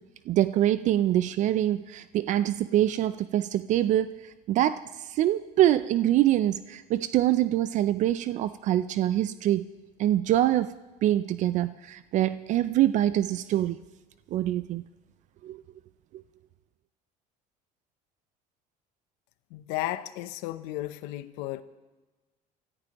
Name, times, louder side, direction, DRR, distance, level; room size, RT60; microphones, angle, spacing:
voice 1, 0.3-9.6 10.0-10.7 11.0-13.8 14.3-14.8 15.4-15.6, right 13 dB, 50° right, 15 dB, 0.4 m, -25 dB
voice 2, 19.5-21.6, left 15 dB, 90° left, 13 dB, 0.7 m, -34 dB
24.0 x 13.5 x 3.0 m, 1.2 s
cardioid pair, 130°, 16 cm